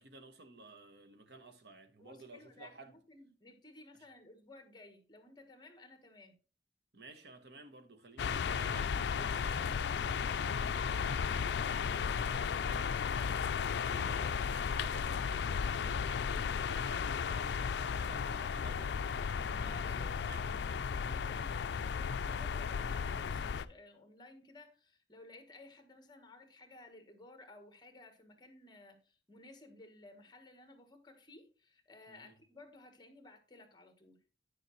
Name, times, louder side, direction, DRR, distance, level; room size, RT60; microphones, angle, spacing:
voice 1, 0.0-3.0 6.9-20.9 32.1-32.3, right 2 dB, 65° right, 1.1 m, -54 dB
voice 2, 2.0-6.3 19.6-20.2 20.8-34.2, left 2 dB, 25° left, 1.3 m, -56 dB
sound 1, 8.2-23.7, left 6 dB, 70° left, 0.4 m, -34 dB
9.4 x 6.8 x 3.1 m
head